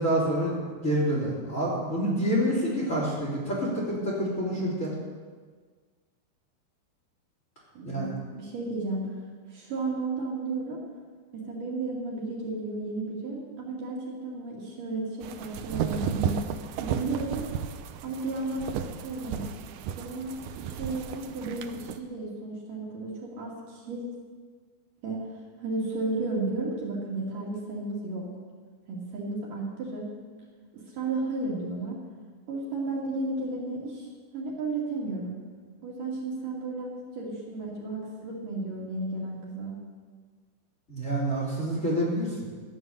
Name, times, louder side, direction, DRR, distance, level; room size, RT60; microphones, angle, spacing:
voice 1, 0.0-4.9 7.8-8.1 40.9-42.3, right 1 dB, 20° left, -5 dB, 3.3 m, -27 dB
voice 2, 7.8-9.2 9.5-10.8 11.3-16.3 16.8-17.5 18.0-19.4 20.0-24.1 25.0-25.3 25.6-28.3 28.9-30.1 30.7-32.0 32.5-34.1 34.3-35.4 35.8-39.7, right 2 dB, 60° right, -3 dB, 3.7 m, -33 dB
sound 1, 15.2-22.0, right 8 dB, 80° right, 2.4 m, -34 dB
14.0 x 9.8 x 6.7 m, 1.5 s
omnidirectional pair, 4.6 m